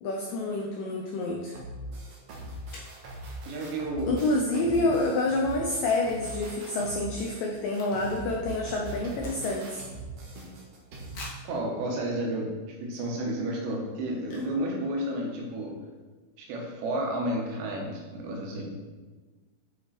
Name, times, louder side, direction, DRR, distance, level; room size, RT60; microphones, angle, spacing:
voice 1, 0.0-1.5 4.1-9.8, left 2 dB, 80° left, 0 dB, 1.9 m, -28 dB
sound 1, 1.5-11.2, right 2 dB, 60° right, 1.7 m, -41 dB
sound 2, 2.7-3.0 6.0-6.2 6.5-6.6 6.8-8.3 8.6-9.8 10.3-10.4 11.1-11.6 12.3-12.4 12.9-13.0 14.2-14.7 14.9-15.0 15.2-15.5, left 1 dB, 65° left, 1.3 m, -47 dB
voice 2, 3.5-4.2 4.6-4.9 11.4-15.8 16.4-18.6, right 1 dB, 80° right, -1 dB, 3.6 m, -32 dB
8.8 x 6.1 x 4.2 m, 1.3 s
omnidirectional pair, 5.0 m